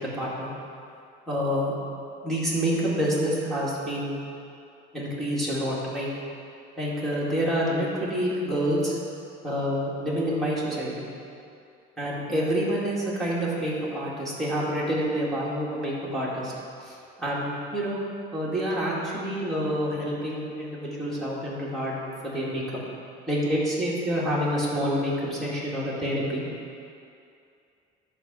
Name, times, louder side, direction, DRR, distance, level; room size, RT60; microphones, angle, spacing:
voice 1, 0.1-0.5 1.3-1.7 2.2-4.2 4.9-6.1 6.8-9.0 9.4-11.1 12.0-16.5 16.8-18.0 18.3-21.9 22.2-22.6 23.3-26.4, equal, ahead, -8 dB, 2.2 m, -27 dB
11.0 x 4.4 x 7.5 m, 2.5 s
cardioid pair, 155°, 19 cm